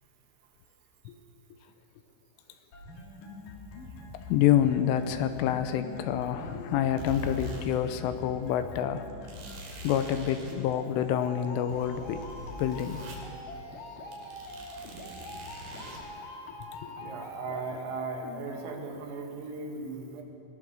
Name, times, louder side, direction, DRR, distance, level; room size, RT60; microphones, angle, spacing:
sound 1, 2.7-18.7, left 2 dB, 50° left, 3.1 m, -44 dB
voice 1, 4.3-9.1 9.8-12.2 12.6-13.0 16.8-17.1, left 10 dB, 85° left, 9 dB, 3.2 m, -27 dB
sound 2, 6.8-7.8 8.1-8.2 9.3-10.6 11.1-13.2 13.6-13.8 14.1-16.0, right 1 dB, 60° right, 5.1 m, -43 dB
voice 2, 14.8-15.3 17.0-20.2, right 4 dB, 90° right, 2 dB, 4.7 m, -38 dB
21.5 x 19.5 x 6.6 m, 2.7 s
omnidirectional pair, 5.8 m